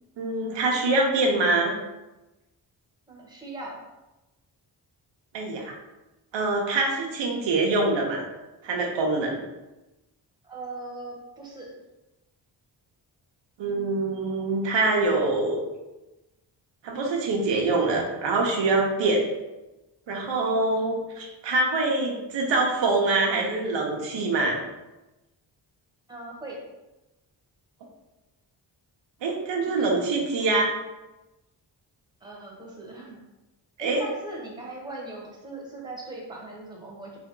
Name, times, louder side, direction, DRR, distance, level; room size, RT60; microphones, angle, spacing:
voice 1, 0.2-1.7 5.3-5.7 6.3-8.2 8.6-9.4 13.6-15.6 16.8-19.3 20.1-24.6 29.2-30.7 33.8-34.0, right 2 dB, 90° right, 0 dB, 0.9 m, -24 dB
voice 2, 3.1-3.8 10.4-11.7 26.1-26.6 29.6-30.5 32.2-33.2 33.8-37.2, right 2 dB, 10° right, -3 dB, 1.3 m, -40 dB
3.7 x 3.5 x 3.8 m, 1.0 s
cardioid pair, 100°, 43 cm